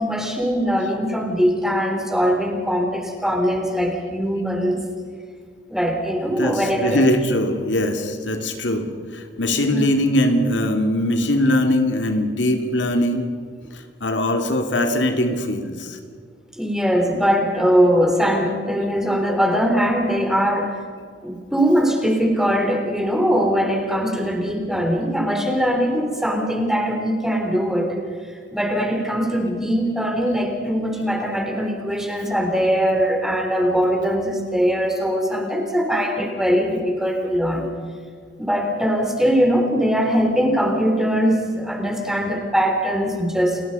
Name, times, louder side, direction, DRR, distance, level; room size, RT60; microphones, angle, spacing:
voice 1, 0.0-4.8 5.7-7.1 9.7-9.9 16.6-20.8 21.2-28.0 28.5-37.7 38.4-43.6, equal, 5° right, 3 dB, 3.7 m, -21 dB
voice 2, 6.4-13.3 14.0-16.0, left 1 dB, 80° left, 5 dB, 2.6 m, -21 dB
30.0 x 19.0 x 5.6 m, 2.1 s
head